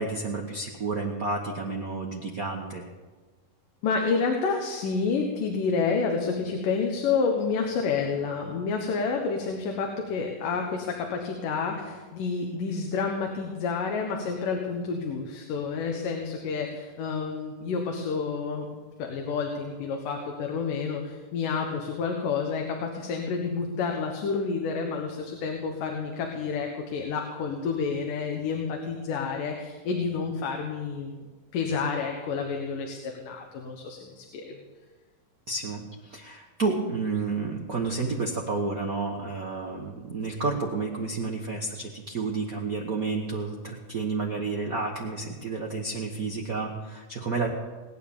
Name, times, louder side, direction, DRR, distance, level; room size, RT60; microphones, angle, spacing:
voice 1, 0.0-2.8 35.5-35.8 36.1-47.5, right 3 dB, 85° right, 0 dB, 0.7 m, -30 dB
voice 2, 3.8-34.6, left 5 dB, 85° left, 2 dB, 2.9 m, -29 dB
19.5 x 9.7 x 7.1 m, 1.3 s
omnidirectional pair, 3.7 m